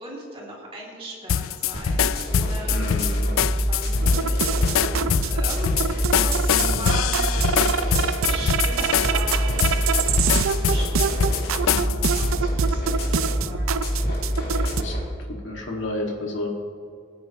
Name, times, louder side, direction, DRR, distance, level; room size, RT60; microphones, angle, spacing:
voice 1, 0.0-2.8 3.5-11.4 11.7-13.6, right 1 dB, 25° right, -4 dB, 2.8 m, -39 dB
sound 1, 1.3-12.3, left 9 dB, 80° left, 0.4 m, -25 dB
sound 2, 1.7-15.1, equal, 50° left, 3.2 m, -26 dB
voice 2, 2.7-3.3 6.5-6.9 14.7-15.0 15.3-16.5, left 2 dB, 65° left, -1 dB, 2.1 m, -31 dB
sound 3, 4.0-14.8, right 7 dB, 90° right, 0.5 m, -27 dB
23.0 x 9.3 x 3.1 m, 2.2 s
head